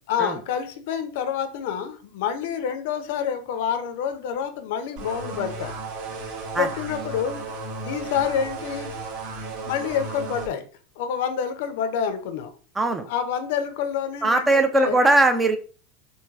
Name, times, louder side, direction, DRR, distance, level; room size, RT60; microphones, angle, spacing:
voice 1, 0.1-5.7 6.6-7.4 7.8-8.9 9.6-10.6 11.0-12.5 13.1-15.0, left 8 dB, 65° left, 8 dB, 0.4 m, -27 dB
sound 1, 5.0-10.5, right 3 dB, 60° right, 0.7 m, -34 dB
voice 2, 14.2-15.6, right 2 dB, 15° right, 7 dB, 0.4 m, -19 dB
3.1 x 2.2 x 2.3 m, 0.40 s
hypercardioid pair, 95°, 0 cm